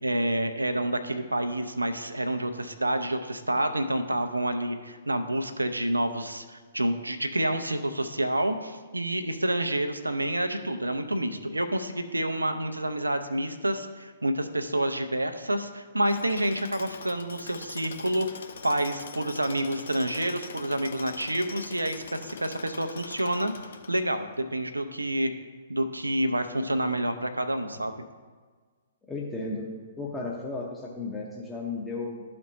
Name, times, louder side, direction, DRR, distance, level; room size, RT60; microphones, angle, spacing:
voice 1, 0.0-23.5 23.9-25.3 25.7-27.9, right 1 dB, 85° right, 8 dB, 0.5 m, -28 dB
Tools, 16.1-24.4, left 5 dB, 60° left, 0.6 m, -43 dB
voice 2, 29.1-29.7 30.0-32.2, left 3 dB, 10° left, -4 dB, 0.8 m, -34 dB
12.0 x 4.2 x 3.0 m, 1.5 s
figure-of-eight pair, 120°, 0 cm